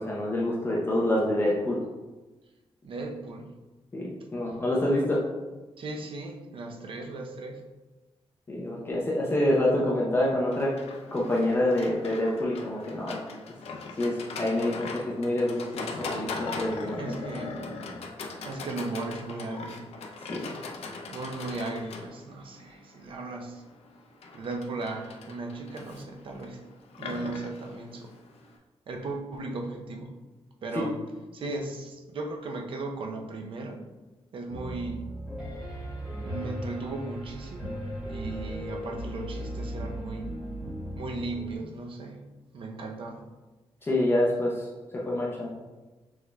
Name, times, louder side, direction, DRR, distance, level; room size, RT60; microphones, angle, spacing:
voice 1, 0.0-1.8 3.9-5.2 8.5-10.7 11.1-13.2 14.0-15.8 16.1-17.1 20.3-20.5 30.7-30.9 43.8-44.7 44.9-45.5, left 1 dB, 20° left, -4 dB, 0.6 m, -27 dB
voice 2, 2.8-3.5 4.4-4.5 5.8-7.6 16.9-17.5 18.4-19.8 21.1-23.6 24.3-26.6 27.0-28.1 28.9-30.1 30.6-31.0 31.3-33.8 34.3-35.0 36.2-40.3 40.9-42.2 42.5-43.2, right 2 dB, 60° right, 2 dB, 0.6 m, -36 dB
Livestock farm animals working animals, 10.5-28.6, left 4 dB, 80° left, 0.5 m, -40 dB
Piano, 34.5-41.5, equal, 10° right, 1.3 m, -37 dB
6.1 x 3.5 x 2.3 m, 1.2 s
wide cardioid pair, 170°, 10 cm